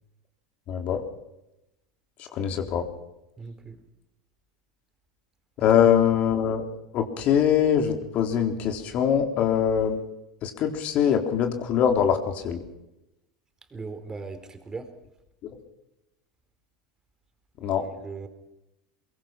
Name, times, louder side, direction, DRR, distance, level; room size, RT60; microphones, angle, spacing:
voice 1, 0.7-1.0 2.2-2.9 5.6-6.6 6.9-10.0 10.4-12.6 17.6-17.9, left 8 dB, 45° left, 5 dB, 3.8 m, -23 dB
voice 2, 3.4-3.8 5.7-5.8 13.7-14.9 17.8-18.3, right 4 dB, 20° right, 8 dB, 4.4 m, -38 dB
23.0 x 23.0 x 6.1 m, 0.90 s
hypercardioid pair, 85°, 3 cm